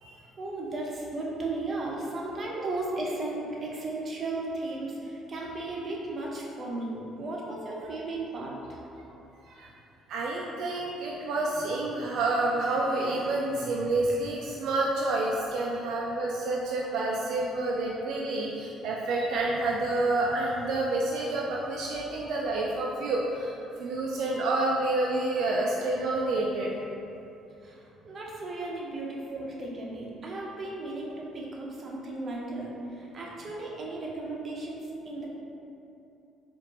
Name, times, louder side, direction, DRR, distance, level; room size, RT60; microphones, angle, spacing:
voice 1, 0.4-8.8 27.6-35.3, right 2 dB, 40° right, -3 dB, 0.7 m, -35 dB
voice 2, 10.1-23.5 23.8-26.7 29.3-29.4, right 2 dB, 75° right, -3 dB, 0.3 m, -28 dB
4.3 x 2.5 x 2.9 m, 2.8 s
cardioid pair, 95°, 0 cm